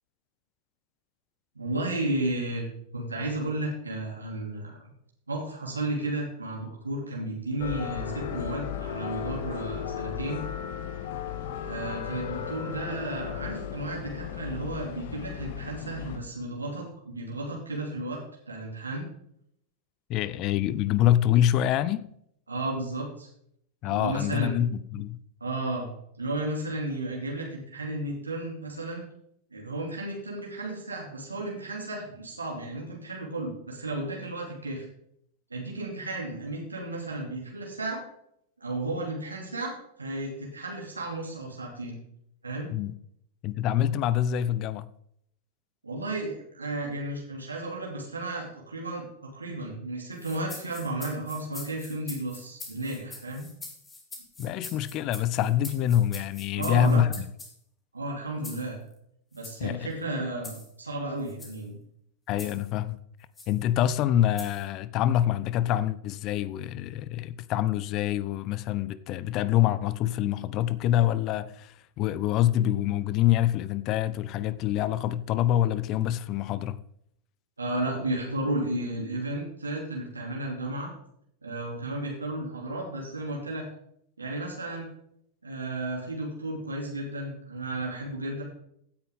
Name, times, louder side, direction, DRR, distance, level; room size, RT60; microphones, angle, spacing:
voice 1, 1.5-2.6 2.9-4.9 5.3-10.4 11.6-19.1 22.5-23.3 23.8-24.5 25.4-25.9 26.2-29.0 29.5-34.9 35.5-38.0 38.6-42.0 42.4-42.7 45.8-53.4 56.5-57.0 57.9-58.8 59.3-61.8 77.6-80.9 81.4-83.7 84.2-84.9 85.4-88.4, right 2 dB, 80° right, 2.8 m, -33 dB
sound 1, 7.6-16.2, left 9 dB, 55° left, 1.1 m, -35 dB
voice 2, 20.1-22.1 23.8-25.2 42.7-42.9 43.4-44.9 54.4-57.3 59.6-59.9 62.3-63.0 63.5-76.8, left 11 dB, 40° left, 0.6 m, -26 dB
sound 2, 50.2-57.5 58.4-58.7 59.3-59.6 60.4-60.7 61.3-61.6 62.4-62.7 63.4-63.6 64.4-64.7, left 3 dB, 15° left, 3.2 m, -44 dB
16.0 x 9.5 x 3.7 m
figure-of-eight pair, 90°, 0 cm